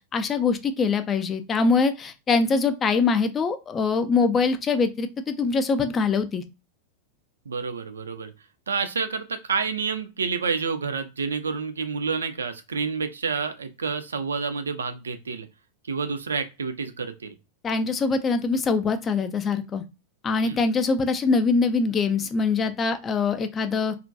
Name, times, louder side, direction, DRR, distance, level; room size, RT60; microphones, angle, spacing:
voice 1, 0.1-6.4 17.6-19.8 20.2-24.0, left 4 dB, 25° left, 9 dB, 0.3 m, -23 dB
voice 2, 7.5-8.3 8.7-15.5 15.9-17.4 20.4-20.6, right 5 dB, 70° right, 9 dB, 0.3 m, -29 dB
2.4 x 2.1 x 2.5 m, 0.28 s
figure-of-eight pair, 90°, 0 cm